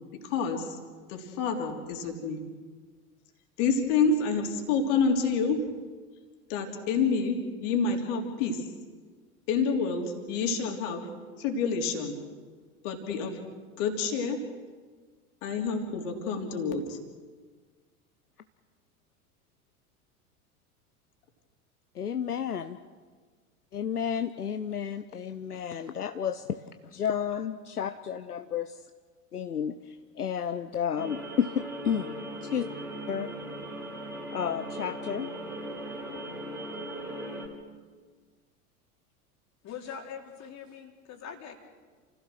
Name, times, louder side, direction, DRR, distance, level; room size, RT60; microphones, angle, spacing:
voice 1, 0.2-0.8 1.1-2.4 3.6-5.6 6.5-8.6 9.5-11.1 11.4-12.2 12.8-13.4 13.8-14.4 15.4-17.0, left 5 dB, 55° left, 3 dB, 3.4 m, -28 dB
voice 2, 21.9-22.8 23.7-26.5 26.8-28.8 29.3-32.2 32.4-32.7 33.1-33.3 34.3-35.3, left 8 dB, 85° left, 9 dB, 0.8 m, -31 dB
sound 1, 31.0-37.5, right 1 dB, 5° right, 4.7 m, -38 dB
voice 3, 39.6-41.6, left 7 dB, 35° left, 3 dB, 3.1 m, -42 dB
28.5 x 16.0 x 6.5 m, 1.5 s
figure-of-eight pair, 80°, 44 cm